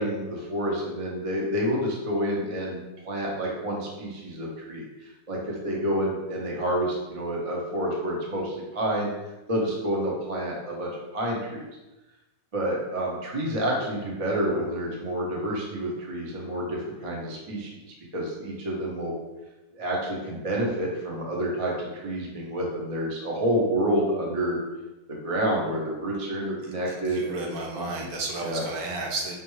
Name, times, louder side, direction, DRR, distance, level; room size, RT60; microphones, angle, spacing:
voice 1, 0.0-9.1 9.5-11.7 12.5-17.7 18.1-19.1 19.7-24.6 25.1-28.1 28.4-28.6, right 1 dB, 35° right, -3 dB, 0.5 m, -29 dB
voice 2, 26.6-29.4, right 2 dB, 75° right, 0 dB, 1.2 m, -33 dB
4.9 x 2.2 x 3.1 m, 1.1 s
omnidirectional pair, 1.6 m